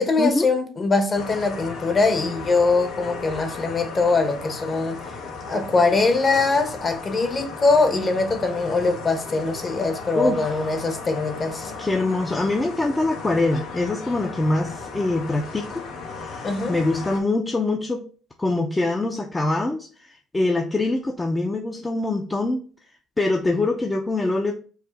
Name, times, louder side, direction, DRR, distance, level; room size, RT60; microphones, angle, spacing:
voice 1, 0.0-5.1 5.5-11.7 16.4-16.7, left 3 dB, 30° left, 1.0 m, -22 dB
sound 1, 1.1-17.2, left 4 dB, 80° left, 1.2 m, -36 dB
voice 2, 10.2-10.6 11.8-15.8 16.1-18.0 18.4-22.6 23.2-24.5, left 2 dB, 15° left, 0.6 m, -24 dB
4.8 x 2.7 x 4.0 m
cardioid pair, 105°, 0 cm